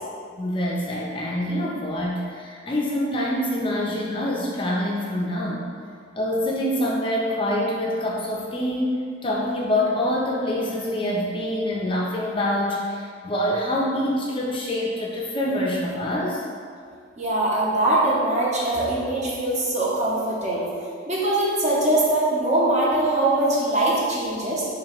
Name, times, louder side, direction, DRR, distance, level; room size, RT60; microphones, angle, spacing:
voice 1, 0.4-5.7 6.1-16.4, left 1 dB, 25° left, -3 dB, 0.4 m, -25 dB
voice 2, 17.2-20.6 21.1-24.7, right 1 dB, 35° right, -6 dB, 0.8 m, -22 dB
3.1 x 2.8 x 4.3 m, 2.2 s
head